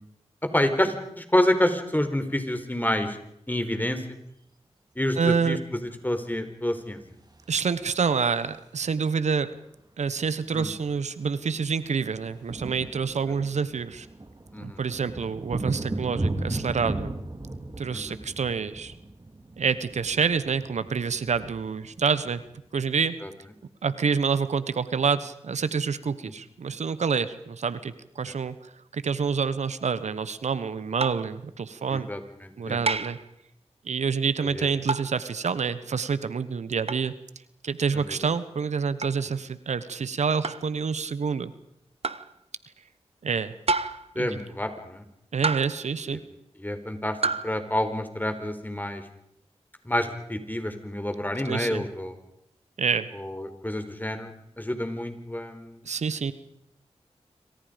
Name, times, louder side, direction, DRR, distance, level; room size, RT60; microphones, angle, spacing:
voice 1, 0.4-3.2 3.5-4.0 5.0-5.6 6.0-7.0 10.5-10.7 13.3-13.4 14.5-14.8 17.9-18.2 23.2-23.3 31.9-32.8 34.4-34.7 37.9-38.2 44.2-45.0 46.1-46.2 46.6-47.2 47.4-49.1 49.8-52.1 53.1-55.9, left 1 dB, 15° left, 7 dB, 4.3 m, -28 dB
voice 2, 5.2-5.6 7.5-9.5 10.0-14.1 14.6-17.1 17.8-18.9 19.6-22.4 22.7-23.1 23.8-28.6 28.9-32.1 32.6-33.2 33.8-37.1 37.6-41.5 43.2-43.6 44.1-44.3 45.3-46.2 51.4-51.8 52.8-53.1 55.8-56.3, right 5 dB, 90° right, 14 dB, 1.2 m, -27 dB
sound 1, 7.3-8.8 10.2-10.3 10.4-10.7 11.0-23.0, right 2 dB, 35° right, 3.1 m, -37 dB
sound 2, 31.0-31.3 32.9-33.3 34.9-35.2 36.9-37.1 39.0-39.2 40.4-40.7 42.0-42.3 43.7-44.1 45.4-45.9 47.2-47.5, right 3 dB, 60° right, 1.1 m, -28 dB
27.5 x 25.0 x 5.2 m, 0.78 s
cardioid pair, 50°, 12 cm